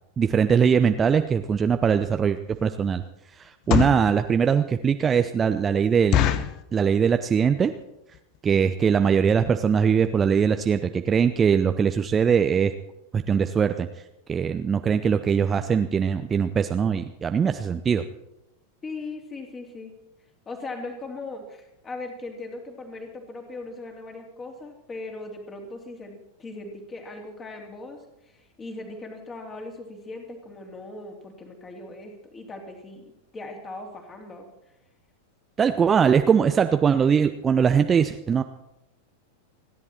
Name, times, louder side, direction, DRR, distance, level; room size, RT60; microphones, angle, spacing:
voice 1, 0.2-3.0 3.4-6.3 6.7-7.7 8.4-12.7 13.1-13.9 14.3-18.0 35.6-38.4, right 7 dB, 20° right, 8 dB, 0.7 m, -21 dB
sound 1, 1.9-2.0 2.5-2.7 3.4-4.1 4.7-4.8 5.1-5.2 5.5-5.6 6.1-6.6 7.2-7.5 7.8-7.9 8.1-8.4 8.9-9.0 9.2-9.4 9.7-9.8 10.0-10.1, left 11 dB, 40° left, 0.9 m, -24 dB
voice 2, 18.8-19.9 20.5-33.0 33.3-34.5, left 2 dB, 20° left, 3 dB, 3.1 m, -39 dB
29.5 x 11.0 x 4.4 m, 0.87 s
figure-of-eight pair, 90°, 0 cm